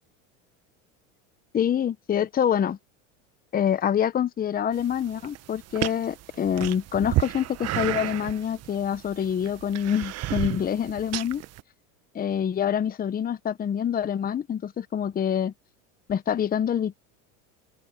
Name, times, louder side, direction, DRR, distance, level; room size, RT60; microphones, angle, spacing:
voice 1, 1.5-2.8 3.5-11.4 12.1-15.5 16.1-17.0, left 9 dB, 25° left, 1.0 m, -26 dB
sound 1, 4.7-11.6, right 16 dB, 45° right, 1.2 m, -32 dB
open air
supercardioid pair, 110°, 36 cm